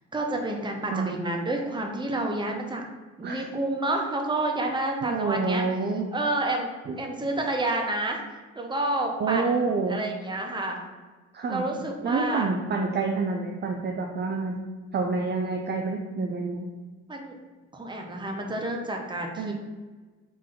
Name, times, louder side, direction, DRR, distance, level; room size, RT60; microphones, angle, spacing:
voice 1, 0.1-2.8 3.2-5.7 6.1-8.2 8.6-9.5 9.9-10.8 11.5-12.5 17.1-17.3 17.7-19.5, right 2 dB, 15° right, 2 dB, 0.8 m, -29 dB
voice 2, 0.9-1.2 3.2-3.4 5.0-6.0 6.9-7.0 9.2-10.0 11.3-11.7 12.0-14.6 14.9-16.7 19.4-19.5, right 4 dB, 35° right, 2 dB, 0.5 m, -28 dB
3.8 x 3.2 x 3.8 m, 1.3 s
cardioid pair, 90°, 30 cm